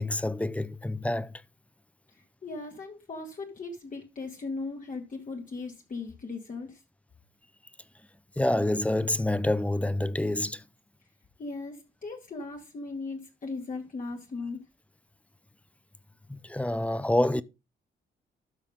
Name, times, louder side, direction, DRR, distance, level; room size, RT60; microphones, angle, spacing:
voice 1, 0.0-1.4 8.4-10.6 16.3-17.4, left 1 dB, 5° left, 0.6 m, -27 dB
voice 2, 2.1-6.8 11.4-14.6, left 3 dB, 40° left, 2.2 m, -38 dB
13.0 x 5.6 x 3.8 m
cardioid pair, 90°, 20 cm